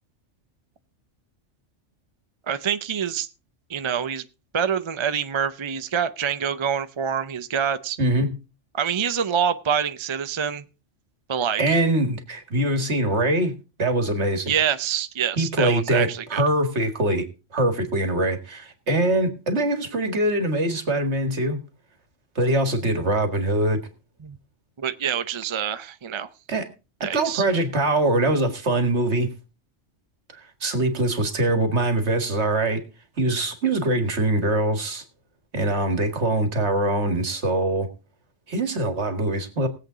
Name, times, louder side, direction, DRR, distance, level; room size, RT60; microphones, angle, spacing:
voice 1, 2.5-3.3 3.7-4.2 4.5-8.0 8.7-10.6 11.3-11.8 14.5-16.4 24.2-24.4 24.8-26.3 27.0-27.4, right 8 dB, 35° right, 11 dB, 0.5 m, -26 dB
voice 2, 8.0-8.3 11.6-13.5 13.8-14.5 15.4-17.3 17.5-21.6 22.4-23.8 26.5-26.7 27.0-29.3 30.3-32.8 33.2-35.0 35.5-37.9 38.5-39.7, right 1 dB, 65° right, 7 dB, 2.1 m, -23 dB
20.0 x 7.9 x 3.9 m, 0.31 s
omnidirectional pair, 1.2 m